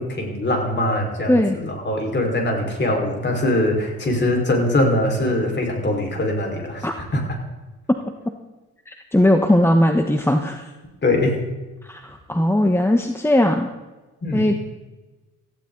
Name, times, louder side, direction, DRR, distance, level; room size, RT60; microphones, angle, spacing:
voice 1, 0.0-7.2 11.0-11.4 14.2-14.5, left 1 dB, 35° left, 1 dB, 5.0 m, -22 dB
voice 2, 8.9-10.6 11.9-13.7 14.3-14.6, left 1 dB, 10° left, 5 dB, 1.3 m, -18 dB
18.5 x 15.0 x 4.0 m, 1.2 s
cardioid pair, 90°, 30 cm